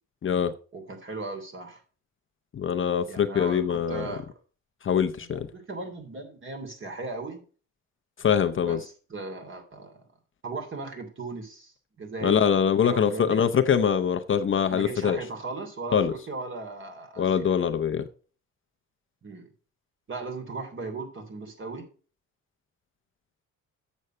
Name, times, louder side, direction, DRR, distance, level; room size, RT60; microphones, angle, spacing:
voice 1, 0.2-0.5 2.5-4.1 4.8-5.5 8.2-8.8 12.2-15.2 15.9-16.1 17.2-18.0, left 7 dB, 40° left, 0.8 m, -23 dB
voice 2, 0.7-1.8 3.1-4.3 5.2-7.4 8.6-10.0 10.4-12.5 12.8-13.4 14.7-17.6 19.2-19.5 20.1-21.9, right 3 dB, 40° right, 3.2 m, -37 dB
7.9 x 6.3 x 5.5 m
cardioid pair, 90°, 30 cm